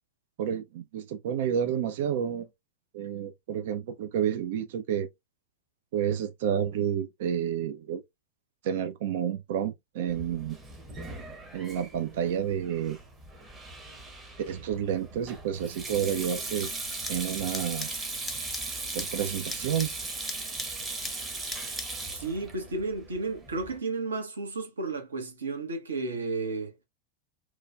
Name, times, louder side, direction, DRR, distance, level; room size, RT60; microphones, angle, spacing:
voice 1, 0.4-2.5 2.9-5.1 5.9-8.0 8.6-10.6 11.5-13.0 14.5-16.7 17.1-17.9 18.9-19.9, right 9 dB, 55° right, 0.4 m, -30 dB
Sink (filling or washing), 10.1-23.8, right 2 dB, 15° right, 0.8 m, -38 dB
sound 1, 16.6-22.0, left 3 dB, 10° left, 0.5 m, -43 dB
voice 2, 22.1-26.7, right 3 dB, 70° right, 0.9 m, -33 dB
3.1 x 2.2 x 2.3 m
figure-of-eight pair, 90°, 0 cm